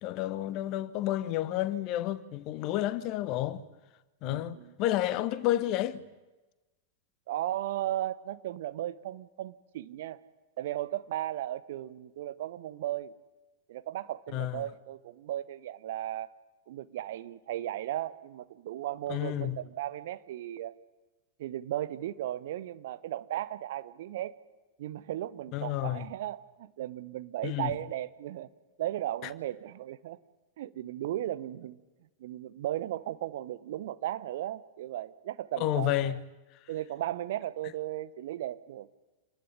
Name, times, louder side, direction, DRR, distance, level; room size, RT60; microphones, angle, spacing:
voice 1, 0.0-3.6 4.2-6.0 14.3-14.7 19.1-19.6 25.5-26.1 27.4-27.7 29.2-29.3 35.6-36.2, left 13 dB, 40° left, 1.2 m, -30 dB
voice 2, 4.2-4.7 7.3-10.2 10.6-13.1 13.7-16.3 16.7-20.7 21.4-24.3 24.8-28.5 28.8-30.2 30.6-31.8 32.2-36.1 36.7-38.9, right 13 dB, 55° right, 1.0 m, -36 dB
27.5 x 19.0 x 9.7 m
figure-of-eight pair, 90°, 0 cm